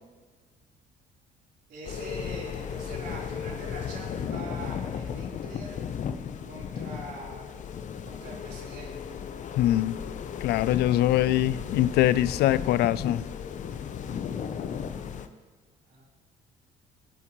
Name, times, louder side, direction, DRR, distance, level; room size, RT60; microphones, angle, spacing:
voice 1, 1.7-5.8 6.4-7.6 8.0-8.9 15.9-16.0, right 2 dB, 70° right, -4 dB, 4.0 m, -43 dB
sound 1, 1.8-15.3, left 7 dB, 45° left, 0.8 m, -35 dB
voice 2, 9.6-10.0 10.4-13.2, left 14 dB, 75° left, 17 dB, 0.4 m, -23 dB
20.5 x 8.6 x 3.1 m, 1.4 s
cardioid pair, 110°, 17 cm